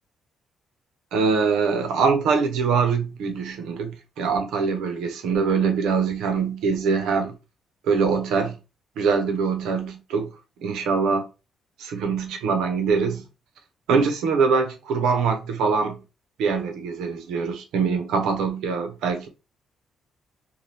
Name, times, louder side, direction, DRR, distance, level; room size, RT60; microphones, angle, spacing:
voice 1, 1.1-7.3 7.9-8.6 9.0-10.3 10.6-11.3 11.8-13.2 13.9-16.0 16.4-19.3, right 5 dB, 90° right, 0.6 m, -23 dB
2.7 x 2.2 x 3.3 m
cardioid pair, 90°, 0 cm